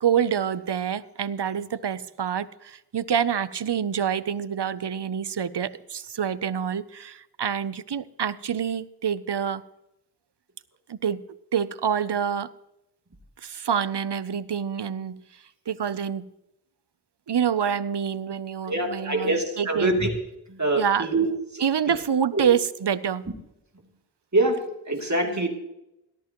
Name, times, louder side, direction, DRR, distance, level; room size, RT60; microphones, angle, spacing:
voice 1, 0.0-9.6 10.9-11.3 11.5-12.5 13.4-15.2 15.7-16.3 17.3-20.0 20.8-21.1 21.6-23.3 25.2-25.4, right 8 dB, 90° right, 0.6 m, -27 dB
voice 2, 18.7-20.1 20.5-21.3 21.5-21.6 21.9-22.0 22.3-22.5 24.3-25.5, right 2 dB, 45° right, 2.7 m, -24 dB
18.0 x 13.5 x 3.0 m
wide cardioid pair, 50°, 40 cm